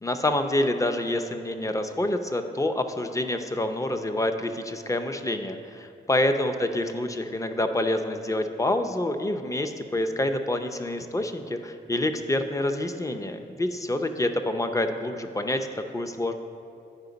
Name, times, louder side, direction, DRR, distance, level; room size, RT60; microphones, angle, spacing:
voice 1, 0.0-15.7 15.9-16.3, left 1 dB, 15° left, 7 dB, 0.6 m, -27 dB
9.6 x 5.0 x 3.9 m, 2.5 s
cardioid pair, 60°, 19 cm